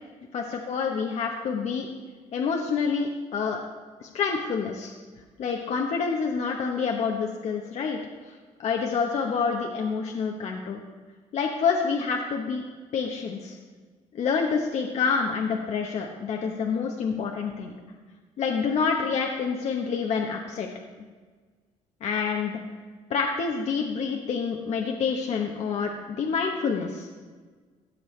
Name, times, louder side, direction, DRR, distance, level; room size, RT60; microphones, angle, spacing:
voice 1, 0.3-1.9 2.3-3.6 4.0-4.9 5.4-8.0 8.2-8.3 8.6-10.8 11.3-12.6 12.9-13.6 14.1-17.7 18.4-20.7 22.0-22.6 23.1-27.1, left 5 dB, 55° left, 1 dB, 1.0 m, -27 dB
16.5 x 6.8 x 3.2 m, 1.4 s
cardioid pair, 105°, 13 cm